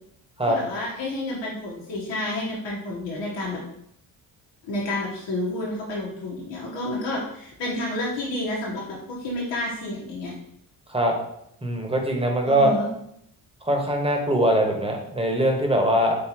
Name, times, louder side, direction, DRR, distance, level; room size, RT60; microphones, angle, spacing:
voice 1, 0.5-3.6 4.6-10.3 12.4-12.9, left 1 dB, 80° left, -5 dB, 1.2 m, -30 dB
voice 2, 11.6-12.7 13.6-16.2, right 1 dB, 15° right, 2 dB, 1.1 m, -22 dB
4.0 x 3.9 x 2.9 m, 0.74 s
supercardioid pair, 60°, 43 cm